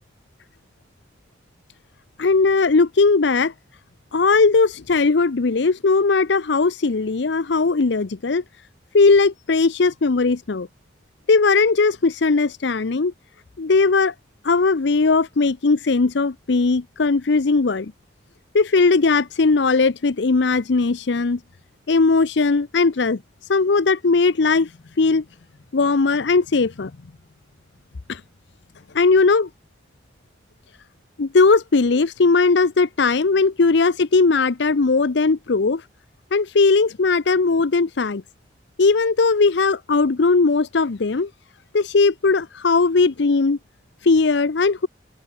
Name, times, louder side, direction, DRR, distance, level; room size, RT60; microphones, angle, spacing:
voice 1, 2.2-3.5 4.1-8.4 8.9-10.7 11.3-13.1 13.6-14.1 14.4-17.9 18.5-21.4 21.9-23.2 23.5-24.7 25.0-25.2 25.7-26.9 28.1-28.2 28.9-29.5 31.2-35.8 36.3-38.2 38.8-41.3 41.7-43.6 44.0-44.9, left 4 dB, 70° left, 0.6 m, -18 dB
head